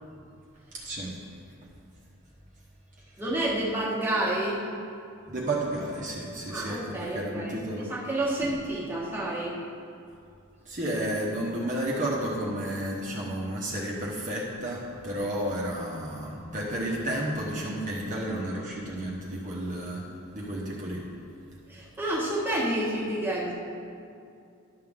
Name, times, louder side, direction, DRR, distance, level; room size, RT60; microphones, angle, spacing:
voice 1, 0.7-1.1 5.3-7.9 10.6-20.0 20.3-21.0, right 1 dB, 40° right, -4 dB, 1.0 m, -32 dB
voice 2, 3.2-4.6 6.5-7.6 7.9-9.6 21.7-23.5, right 1 dB, 10° right, -5 dB, 1.4 m, -29 dB
11.5 x 6.7 x 3.6 m, 2.4 s
head